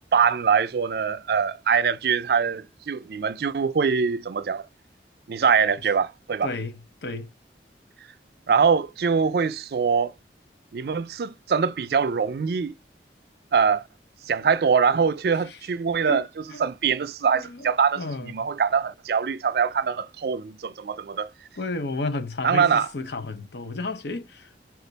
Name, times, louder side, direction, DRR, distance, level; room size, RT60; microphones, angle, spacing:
voice 1, 0.1-4.7 5.3-6.5 8.5-10.1 10.7-12.7 13.5-13.8 14.2-16.2 16.6-21.3 22.4-22.9, right 6 dB, 60° right, 0.4 m, -23 dB
voice 2, 6.4-7.3 15.3-15.6 16.0-16.2 16.5-16.6 17.3-17.7 18.0-18.4 21.6-24.6, left 2 dB, 70° left, 0.7 m, -32 dB
4.3 x 2.4 x 3.9 m
head